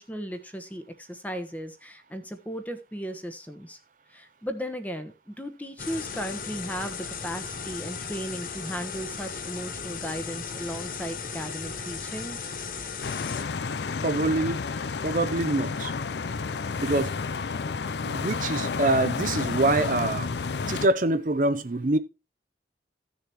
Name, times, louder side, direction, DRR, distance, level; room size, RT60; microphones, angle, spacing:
voice 1, 0.0-3.8 4.1-12.4, equal, 10° left, 1.1 m, -36 dB
sound 1, 5.8-13.4, left 5 dB, 50° left, 0.9 m, -36 dB
sound 2, 13.0-20.9, left 4 dB, 75° left, 0.5 m, -31 dB
voice 2, 14.0-14.6 15.0-15.9 16.8-17.1 18.0-20.3 20.7-22.0, right 2 dB, 45° right, 0.6 m, -25 dB
15.5 x 6.7 x 3.0 m
head